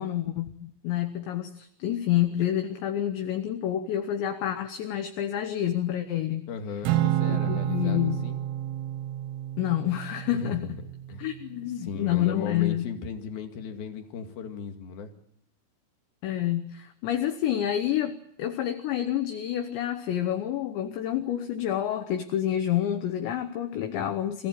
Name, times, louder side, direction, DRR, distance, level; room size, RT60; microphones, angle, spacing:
voice 1, 0.0-6.5 7.3-8.3 9.6-10.8 11.2-12.9 16.2-24.5, left 11 dB, 70° left, 7 dB, 3.0 m, -28 dB
voice 2, 6.5-8.4 10.3-10.7 11.1-11.3 11.8-15.1, left 6 dB, 55° left, 5 dB, 3.5 m, -36 dB
Acoustic guitar / Strum, 6.8-11.3, right 13 dB, 85° right, 3.8 m, -30 dB
26.0 x 15.5 x 9.9 m, 0.75 s
omnidirectional pair, 5.9 m